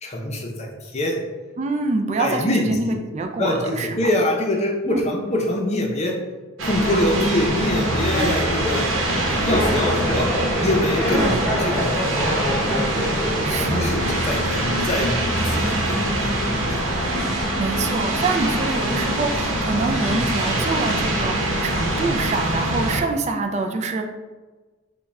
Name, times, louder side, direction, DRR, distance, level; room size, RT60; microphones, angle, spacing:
voice 1, 0.0-1.2 2.2-2.6 2.9-3.0 3.4-6.1 6.6-10.3 10.6-11.3 11.6-12.6 13.5-16.8, left 1 dB, 35° left, 0 dB, 0.6 m, -24 dB
voice 2, 1.6-4.0 4.8-5.0 11.1-11.6 13.4-14.0 17.6-24.1, right 3 dB, 35° right, 4 dB, 0.3 m, -25 dB
sound 1, 6.6-23.0, right 1 dB, 85° right, 0.8 m, -23 dB
Laughter, 8.1-14.3 14.6-15.1, left 1 dB, 10° left, 1.0 m, -27 dB
3.5 x 2.2 x 4.0 m, 1.3 s
head